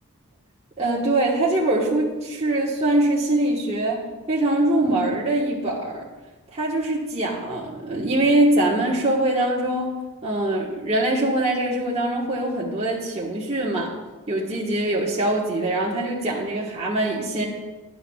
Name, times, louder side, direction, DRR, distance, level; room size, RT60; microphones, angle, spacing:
voice 1, 0.8-6.1 6.5-9.9 10.2-13.9 14.3-17.4, right 1 dB, 30° right, -5 dB, 1.4 m, -23 dB
18.5 x 9.7 x 2.4 m, 1.2 s
head